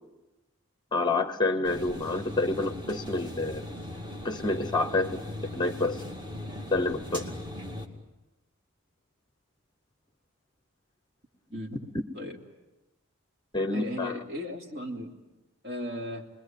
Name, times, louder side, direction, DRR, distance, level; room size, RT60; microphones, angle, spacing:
voice 1, 0.9-3.7 4.2-5.2 5.5-6.0 6.7-7.3 13.5-14.2, left 2 dB, 20° left, 9 dB, 0.8 m, -28 dB
sound 1, 1.6-7.9, left 1 dB, 20° right, 2.3 m, -39 dB
voice 2, 13.7-15.1 15.6-16.2, left 1 dB, 50° right, 0 dB, 3.3 m, -36 dB
28.0 x 21.0 x 9.1 m, 1.1 s
head